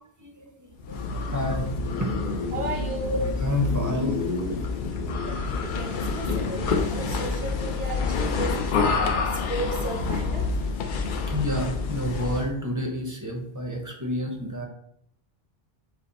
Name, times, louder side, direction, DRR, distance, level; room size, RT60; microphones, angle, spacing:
voice 1, 0.2-1.7 2.0-2.1 3.1-4.2 11.3-14.7, left 1 dB, 20° right, 0.6 m, -29 dB
sound 1, 0.8-12.5, left 4 dB, 60° left, 0.6 m, -28 dB
voice 2, 2.5-3.1 5.2-9.0 9.5-10.6, right 2 dB, 70° right, 1.0 m, -35 dB
5.5 x 2.1 x 4.1 m
omnidirectional pair, 1.1 m